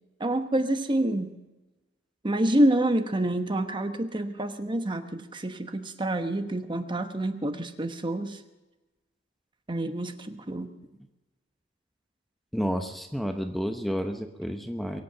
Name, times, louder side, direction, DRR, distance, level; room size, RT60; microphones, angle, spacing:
voice 1, 0.2-1.4 2.2-8.4 9.7-10.7, right 1 dB, 25° right, 8 dB, 1.1 m, -27 dB
voice 2, 12.5-15.0, equal, ahead, 6 dB, 0.9 m, -30 dB
23.0 x 8.5 x 6.7 m, 1.1 s
head